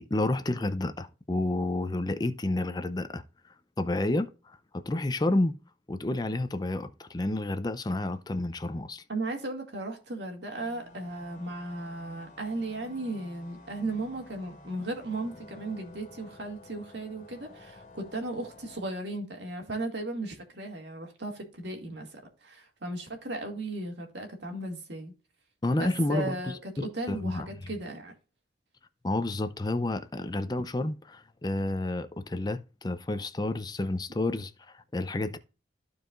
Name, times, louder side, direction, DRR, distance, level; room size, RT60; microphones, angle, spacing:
voice 1, 0.0-3.2 3.8-5.6 5.9-9.0 25.6-26.4 26.8-27.5 29.0-35.4, left 2 dB, 25° left, 0.5 m, -30 dB
voice 2, 9.1-25.1 25.7-26.6 26.9-28.1, right 2 dB, 75° right, 2.3 m, -36 dB
sound 1, 10.6-18.8, left 2 dB, 45° left, 1.9 m, -51 dB
14.0 x 4.8 x 2.5 m
head